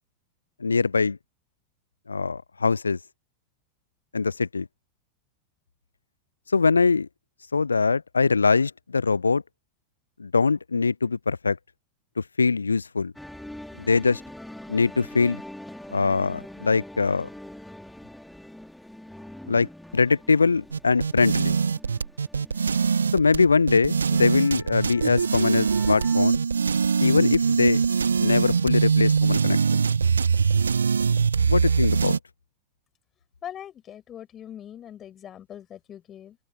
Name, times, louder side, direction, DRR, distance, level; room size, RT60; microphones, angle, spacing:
voice 1, 0.6-1.2 2.1-3.0 4.1-4.7 6.5-7.1 7.5-9.4 10.2-11.6 12.2-13.1 13.8-14.2 14.7-15.4 15.9-17.3 19.5-21.6 23.1-26.4 27.0-27.8 28.2-29.8 31.5-32.2, left 4 dB, 75° left, 0.4 m, -22 dB
sound 1, 13.2-26.2, left 1 dB, 5° left, 3.7 m, -44 dB
sound 2, 20.7-32.2, right 5 dB, 75° right, 0.5 m, -23 dB
voice 2, 33.4-36.4, left 10 dB, 25° left, 7.9 m, -41 dB
open air
figure-of-eight pair, 90°, 0 cm